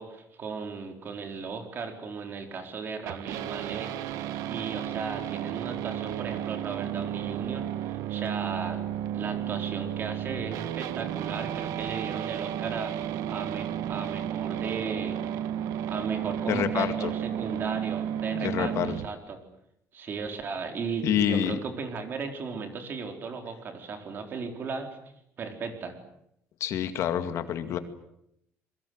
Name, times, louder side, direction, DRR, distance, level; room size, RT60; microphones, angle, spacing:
voice 1, 0.0-8.9 9.1-15.2 15.9-19.4 19.9-25.0 25.4-26.0, right 5 dB, 40° right, 5 dB, 4.2 m, -36 dB
sound 1, 3.1-19.1, right 10 dB, 85° right, 1.5 m, -33 dB
voice 2, 16.5-17.1 18.3-19.0 21.0-21.6 26.6-27.8, left 10 dB, 60° left, 9 dB, 2.2 m, -27 dB
27.0 x 23.5 x 7.9 m, 0.76 s
cardioid pair, 160°, 6 cm